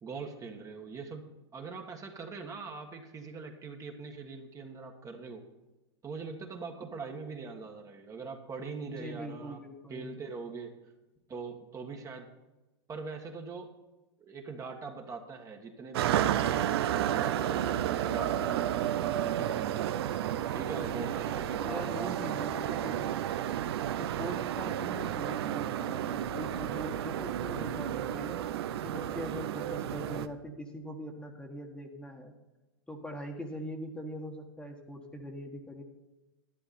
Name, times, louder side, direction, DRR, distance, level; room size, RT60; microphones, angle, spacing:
voice 1, 0.0-5.5 6.0-9.6 9.9-10.8 11.3-12.3 12.9-13.8 14.2-19.8 20.5-22.9, right 4 dB, 25° right, 3 dB, 1.5 m, -42 dB
voice 2, 8.9-10.2 21.6-23.1 24.0-28.4 28.8-32.4 32.9-35.8, equal, 5° left, 3 dB, 1.5 m, -42 dB
sound 1, 15.9-30.3, right 11 dB, 70° right, 0.8 m, -32 dB
11.5 x 11.0 x 4.2 m, 1.1 s
hypercardioid pair, 110°, 14 cm